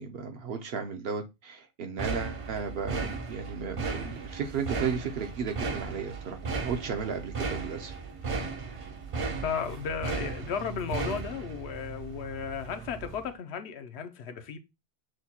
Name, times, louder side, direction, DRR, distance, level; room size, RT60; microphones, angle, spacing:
voice 1, 0.0-7.9, right 6 dB, 70° right, 0.8 m, -34 dB
sound 1, 2.0-13.3, right 4 dB, 40° right, 0.5 m, -36 dB
voice 2, 9.4-14.6, left 7 dB, 80° left, 0.9 m, -34 dB
6.2 x 2.2 x 2.8 m
omnidirectional pair, 1.1 m